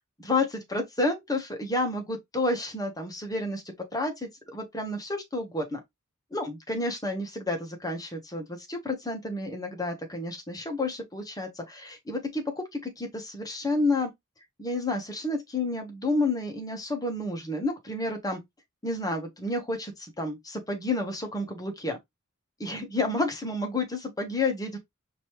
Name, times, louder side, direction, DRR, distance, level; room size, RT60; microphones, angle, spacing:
voice 1, 0.2-3.6 3.9-5.8 6.3-14.1 14.6-18.4 18.8-22.0 22.6-24.8, left 2 dB, 15° left, 1.2 m, -30 dB
5.2 x 2.9 x 3.1 m
head